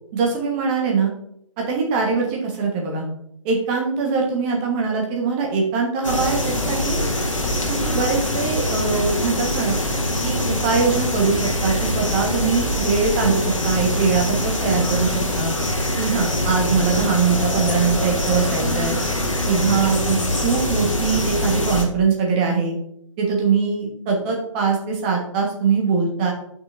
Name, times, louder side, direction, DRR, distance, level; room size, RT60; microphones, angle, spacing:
voice 1, 0.1-1.1 1.6-3.0 3.4-6.4 6.7-7.0 7.7-9.7 10.2-15.5 16.0-19.0 19.5-22.8 23.2-26.3, right 5 dB, 20° right, 0 dB, 1.2 m, -22 dB
sound 1, 6.0-21.8, left 1 dB, 70° left, 1.6 m, -23 dB
8.5 x 5.9 x 2.6 m, 0.73 s
figure-of-eight pair, 145°, 17 cm